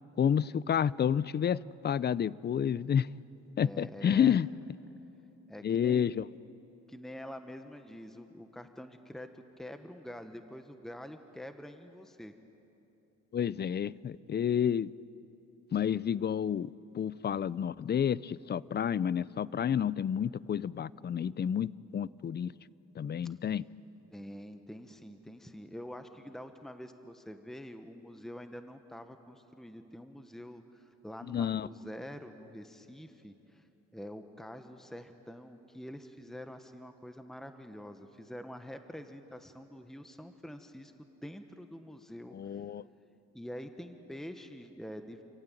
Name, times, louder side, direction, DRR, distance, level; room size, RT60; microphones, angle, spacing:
voice 1, 0.2-3.1 3.6-4.5 5.6-6.3 13.3-14.9 15.7-16.7 16.9-22.5 23.0-23.6 31.3-31.7 42.3-42.8, left 8 dB, 35° left, 21 dB, 0.5 m, -30 dB
voice 2, 3.6-4.4 5.5-6.1 6.9-12.3 24.1-33.6 33.9-42.6 43.3-45.2, equal, ahead, 8 dB, 1.2 m, -46 dB
27.5 x 15.5 x 9.1 m, 3.0 s
cardioid pair, 90°, 30 cm